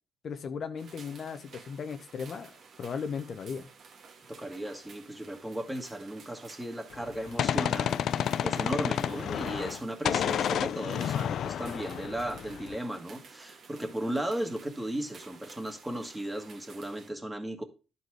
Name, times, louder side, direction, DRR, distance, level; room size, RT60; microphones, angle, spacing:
voice 1, 0.2-2.5 2.8-3.7 9.1-9.2, left 6 dB, 55° left, 0.7 m, -36 dB
sound 1, 0.8-17.1, right 5 dB, 60° right, 1.4 m, -53 dB
voice 2, 4.3-17.6, right 1 dB, 10° right, 1.6 m, -36 dB
Gunshot gunfire, 6.9-9.8 10.1-12.8, left 9 dB, 70° left, 0.3 m, -30 dB
11.0 x 4.2 x 4.7 m
cardioid pair, 90°, 0 cm